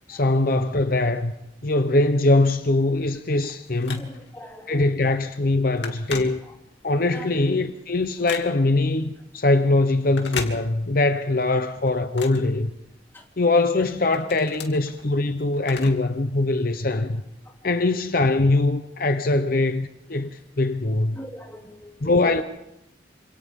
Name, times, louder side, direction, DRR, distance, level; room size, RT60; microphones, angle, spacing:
voice 1, 0.1-1.3 1.6-4.1 4.7-6.4 6.8-12.7 13.4-17.2 17.6-21.2 22.0-22.4, left 2 dB, 55° left, 0.9 m, -22 dB
Telephone, 3.4-4.5 4.9-5.1 5.4-6.9 7.3-8.9 10.0-11.1 11.5-13.2 13.7-16.2 16.5-16.6 17.5-17.6, left 5 dB, 85° left, 2.8 m, -37 dB
voice 2, 4.0-4.8 7.2-7.3 21.1-22.3, equal, 15° left, 3.0 m, -40 dB
28.0 x 26.5 x 3.8 m
head